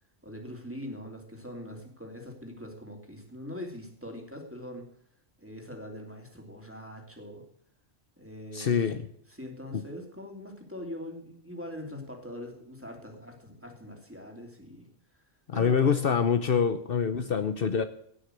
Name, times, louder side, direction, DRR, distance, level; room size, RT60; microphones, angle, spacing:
voice 1, 0.2-4.8 5.4-7.4 8.2-8.9 9.3-14.9 15.5-16.1, left 1 dB, 10° right, 2 dB, 3.1 m, -42 dB
voice 2, 8.5-9.0 9.7-9.8 15.5-17.8, left 6 dB, 60° left, 10 dB, 1.0 m, -25 dB
17.0 x 6.4 x 7.9 m, 0.67 s
omnidirectional pair, 1.1 m